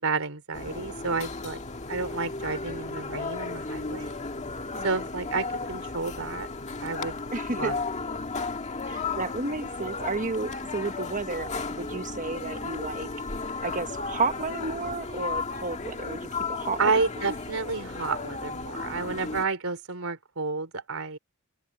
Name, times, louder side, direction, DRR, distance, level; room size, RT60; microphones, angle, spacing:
voice 1, 0.0-1.6 1.9-4.2 4.8-6.5 6.8-7.2 7.6-7.8 16.8-21.2, right 4 dB, 75° right, 4.0 m, -30 dB
sound 1, 0.5-19.5, left 4 dB, 35° left, 1.8 m, -34 dB
voice 2, 4.7-5.1 7.3-7.7 8.9-13.1 13.6-17.3, right 3 dB, 40° right, 1.2 m, -32 dB
open air
head